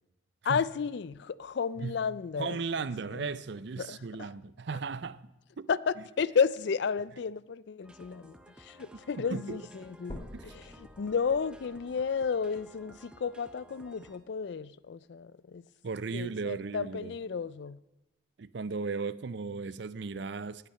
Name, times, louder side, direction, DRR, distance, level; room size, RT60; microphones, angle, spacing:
voice 1, 0.4-2.6 3.1-3.3 3.8-4.3 5.7-15.7 16.1-17.8, left 6 dB, 60° left, 0.4 m, -32 dB
voice 2, 2.4-5.3 5.6-5.7 8.9-9.6 10.3-10.5 15.8-17.2 18.4-20.7, right 4 dB, 55° right, 0.5 m, -36 dB
sound 1, 7.8-14.2, equal, 5° right, 0.6 m, -55 dB
sound 2, 10.1-14.1 14.7-14.8 15.3-15.4 15.8-15.9 16.7-16.8, left 1 dB, 25° left, 1.3 m, -50 dB
18.5 x 9.2 x 5.7 m
head